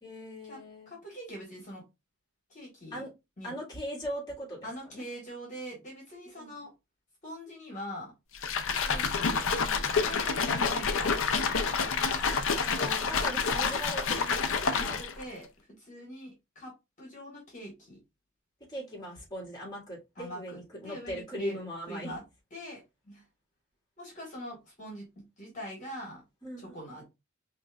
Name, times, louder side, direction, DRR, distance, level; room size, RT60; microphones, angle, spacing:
voice 1, 0.0-0.9 2.9-3.1 3.4-5.0 6.4-6.6 8.8-9.2 12.7-15.0 18.7-22.2 26.4-26.8, equal, 20° left, 1.8 m, -40 dB
voice 2, 0.9-1.8 2.5-3.1 3.4-3.5 4.6-6.7 7.2-8.1 10.0-11.3 14.7-15.5 15.8-16.7 17.0-18.0 20.1-20.6 20.8-21.6 21.9-22.2 22.5-23.2 24.0-26.2 26.6-27.0, equal, 35° left, 1.6 m, -43 dB
sound 1, 8.3-15.2, left 5 dB, 65° left, 0.6 m, -28 dB
5.1 x 2.9 x 2.3 m
head